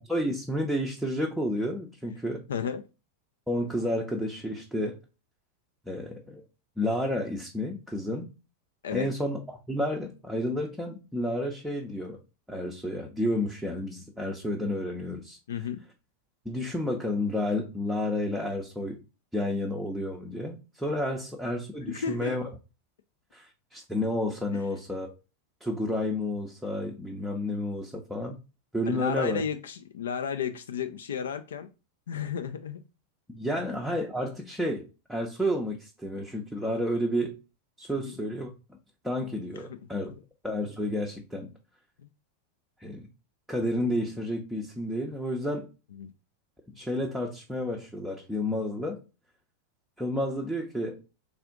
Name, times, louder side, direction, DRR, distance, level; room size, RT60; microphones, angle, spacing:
voice 1, 0.1-2.4 3.5-5.0 5.9-6.4 6.8-8.3 8.9-9.4 9.7-12.2 12.5-15.4 16.5-19.0 19.3-22.5 23.3-25.1 25.6-28.4 28.7-29.4 33.3-37.3 37.8-38.5 39.0-40.1 40.4-41.5 42.8-43.1 43.5-45.7 46.8-49.0 50.0-51.1, left 1 dB, ahead, -1 dB, 0.6 m, -31 dB
voice 2, 2.5-2.8 8.8-9.1 15.5-15.8 21.9-22.3 28.9-31.7 32.1-32.8 37.9-38.1 39.7-39.8 46.0-46.1, left 7 dB, 65° left, 8 dB, 0.3 m, -33 dB
3.6 x 2.5 x 3.5 m, 0.30 s
figure-of-eight pair, 90°, 0 cm